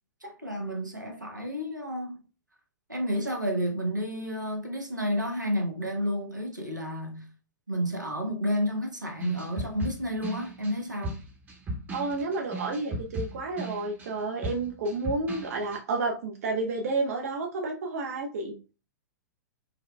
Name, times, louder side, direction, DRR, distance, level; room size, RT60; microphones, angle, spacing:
voice 1, 0.2-2.2 2.9-7.3 7.7-11.2, equal, 85° right, 1.0 m, -31 dB
sound 1, 9.2-15.8, right 1 dB, 20° right, 0.9 m, -37 dB
voice 2, 11.9-18.6, right 3 dB, 55° right, 0.6 m, -30 dB
5.3 x 2.2 x 2.2 m
figure-of-eight pair, 105°, 10 cm